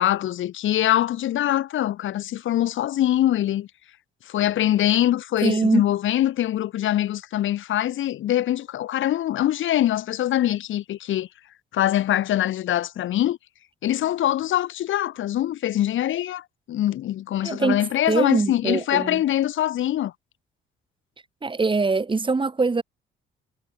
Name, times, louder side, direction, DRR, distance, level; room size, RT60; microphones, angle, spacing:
voice 1, 0.0-3.7 4.3-11.3 11.7-13.4 13.8-20.1, left 12 dB, 75° left, 4.9 m, -23 dB
voice 2, 5.4-5.8 17.4-19.2 21.4-22.8, right 4 dB, 25° right, 2.4 m, -23 dB
cardioid pair, 90°, 20 cm